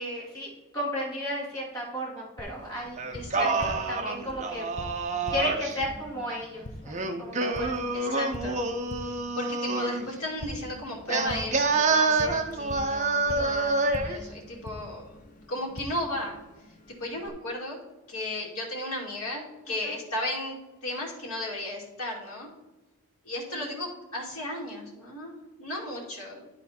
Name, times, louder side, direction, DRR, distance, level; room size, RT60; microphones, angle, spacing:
voice 1, 0.0-3.0 3.3-3.5 3.9-4.7 5.3-7.7 13.3-13.6 19.8-19.9 23.5-23.6, equal, 15° left, -6 dB, 2.9 m, -34 dB
Tap, 2.4-17.3, left 1 dB, 35° left, 0.7 m, -43 dB
Singing, 3.0-5.8 6.9-10.1 11.1-14.2, right 3 dB, 30° right, 0.7 m, -27 dB
voice 2, 3.1-3.8 7.9-8.6 9.1-15.2 15.5-16.4 17.0-17.8 18.1-22.5 23.2-25.3 25.6-26.5, left 1 dB, 80° left, -2 dB, 2.5 m, -35 dB
11.5 x 4.1 x 4.3 m, 1.1 s
head